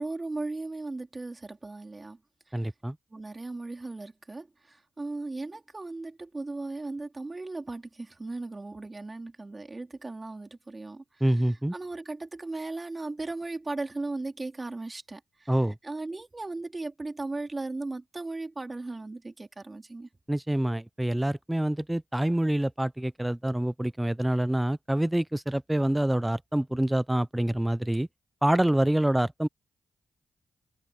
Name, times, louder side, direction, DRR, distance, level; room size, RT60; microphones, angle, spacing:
voice 1, 0.0-2.2 3.1-11.0 11.7-15.6 15.8-20.1, right 2 dB, 30° right, 3.9 m, -37 dB
voice 2, 2.5-2.9 11.2-11.7 15.5-15.7 20.3-28.1 28.4-29.5, right 1 dB, 10° right, 0.5 m, -26 dB
supercardioid pair, 45°, 0 cm